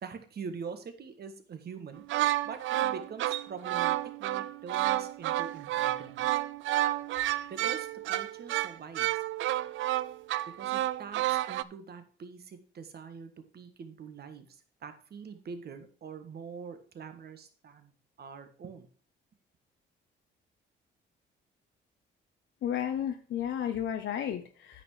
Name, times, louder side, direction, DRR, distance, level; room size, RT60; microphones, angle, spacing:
voice 1, 0.0-2.0 2.4-6.3 7.5-9.2 10.5-17.9 18.2-18.9, right 6 dB, 55° right, 8 dB, 1.6 m, -44 dB
sound 1, 1.9-11.6, right 14 dB, 80° right, 0.4 m, -30 dB
voice 2, 22.6-24.8, left 9 dB, 70° left, 6 dB, 0.9 m, -33 dB
9.2 x 5.8 x 4.8 m, 0.41 s
cardioid pair, 90°, 20 cm